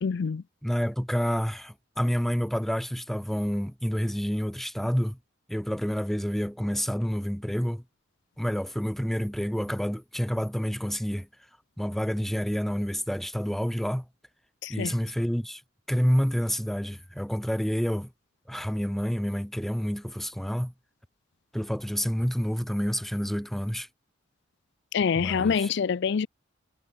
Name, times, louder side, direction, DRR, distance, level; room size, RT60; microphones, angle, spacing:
voice 1, 0.0-0.4 14.6-14.9 24.9-26.3, left 6 dB, 60° left, 0.4 m, -26 dB
voice 2, 0.6-5.2 5.5-7.8 8.4-11.3 11.8-14.1 14.7-15.6 15.9-18.1 18.5-20.7 21.5-23.9 25.2-25.7, equal, ahead, 0.7 m, -28 dB
head